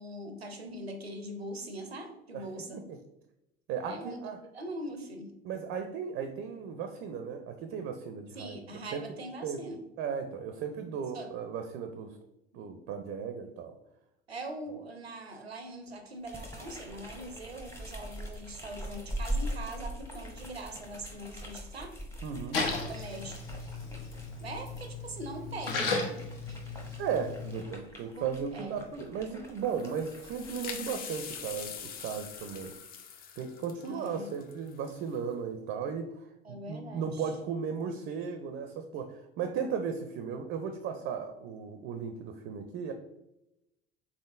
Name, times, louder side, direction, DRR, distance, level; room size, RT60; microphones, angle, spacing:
voice 1, 0.0-2.8 3.9-5.3 8.3-9.8 11.1-11.3 12.5-12.7 14.3-22.0 22.8-23.7 24.4-26.1 28.2-28.8 33.8-34.4 36.4-37.3, right 1 dB, 90° right, 6 dB, 0.5 m, -42 dB
voice 2, 3.7-4.4 5.4-8.6 8.9-9.0 9.4-9.6 10.0-12.2 12.5-13.7 22.2-22.6 27.0-32.8 33.4-42.9, right 6 dB, 35° right, 7 dB, 0.4 m, -36 dB
sound 1, 16.2-24.9 25.5-32.7, right 1 dB, 10° left, 0.8 m, -42 dB
Splash splatter, 22.5-27.6, left 3 dB, 70° left, 0.7 m, -35 dB
sound 2, 29.6-35.2, left 7 dB, 30° left, 0.4 m, -44 dB
3.7 x 3.5 x 2.4 m, 0.88 s
figure-of-eight pair, 65°, 30 cm